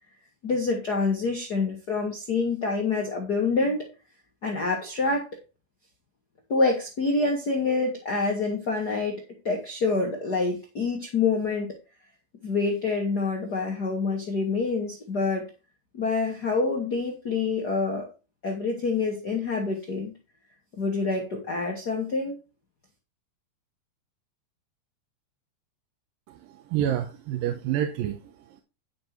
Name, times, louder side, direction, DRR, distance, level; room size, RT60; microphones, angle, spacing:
voice 1, 0.4-3.8 4.4-5.3 6.5-11.8 12.4-15.5 15.9-18.1 18.4-20.1 20.8-22.4, left 4 dB, 35° left, 0 dB, 1.8 m, -26 dB
voice 2, 26.3-28.6, right 10 dB, 85° right, 6 dB, 2.7 m, -29 dB
11.0 x 6.1 x 4.6 m, 0.30 s
omnidirectional pair, 3.9 m